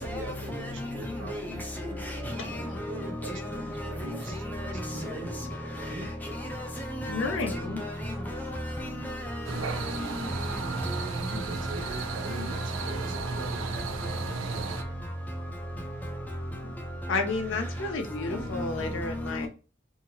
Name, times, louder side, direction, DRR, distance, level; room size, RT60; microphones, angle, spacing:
voice 1, 0.0-6.1 9.5-10.2 11.3-14.9, right 1 dB, 70° right, 0.9 m, -43 dB
voice 2, 2.3-3.1 3.5-5.1 5.8-5.9 6.2-6.3 7.0-7.9 8.3-10.1 18.5-18.7 19.4-19.5, left 1 dB, 10° left, 0.6 m, -35 dB
voice 3, 7.1-7.8 16.6-16.7 17.1-19.5, left 3 dB, 75° left, 0.6 m, -31 dB
sound 1, 9.4-14.8, right 4 dB, 85° right, 0.5 m, -34 dB
2.8 x 2.7 x 2.8 m
head